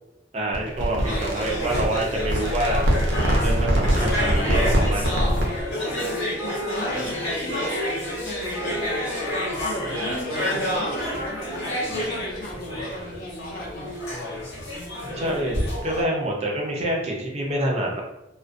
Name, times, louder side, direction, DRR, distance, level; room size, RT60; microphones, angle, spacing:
voice 1, 0.3-2.8 3.4-5.1 15.1-18.0, right 1 dB, 35° right, -2 dB, 0.4 m, -27 dB
sound 1, 0.5-5.6, equal, 80° right, 0.6 m, -23 dB
sound 2, 1.0-16.0, left 1 dB, 85° left, 0.9 m, -29 dB
Wind instrument woodwind instrument, 3.6-12.4, equal, ahead, 0.6 m, -39 dB
voice 2, 6.4-7.7 8.2-8.9 9.6-14.0, left 1 dB, 45° left, -3 dB, 0.6 m, -36 dB
2.3 x 2.1 x 2.5 m, 0.93 s
head